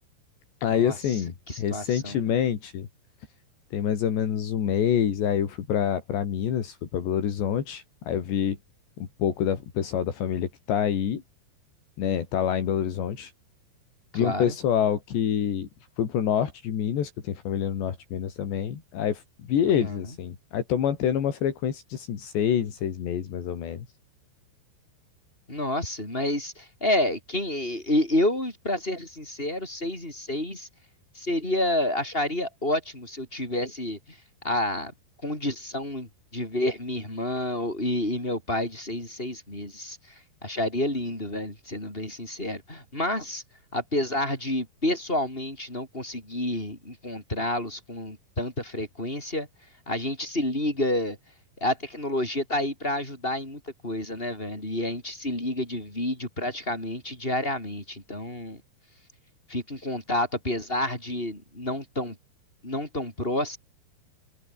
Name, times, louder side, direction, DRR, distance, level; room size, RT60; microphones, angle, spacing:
voice 1, 0.6-2.9 3.7-8.6 9.0-11.2 12.0-13.3 14.2-15.7 16.0-23.9, left 9 dB, 75° left, 5.2 m, -27 dB
voice 2, 1.5-2.3 14.1-14.5 19.8-20.0 25.5-30.7 31.1-34.2 34.4-34.9 35.2-40.0 40.4-43.4 43.7-49.5 49.9-51.2 51.6-58.6 59.5-62.2 62.6-63.6, left 1 dB, 10° left, 6.9 m, -29 dB
omnidirectional pair, 5.1 m